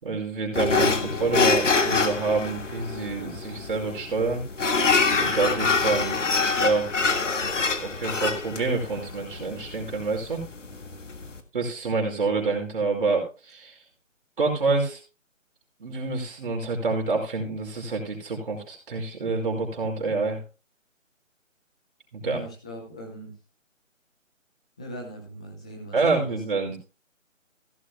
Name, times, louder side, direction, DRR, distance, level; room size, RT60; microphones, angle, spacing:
voice 1, 0.0-4.4 5.2-6.2 6.6-6.9 7.8-10.4 11.5-13.8 14.4-15.0 15.8-20.4 22.1-22.4 25.9-26.8, right 3 dB, 40° right, 1 dB, 5.1 m, -27 dB
sound 1, 0.5-11.4, left 4 dB, 65° left, 1.9 m, -25 dB
voice 2, 22.2-23.3 24.8-26.4, equal, 5° left, 0 dB, 0.7 m, -40 dB
16.0 x 12.5 x 2.2 m, 0.31 s
figure-of-eight pair, 155°, 39 cm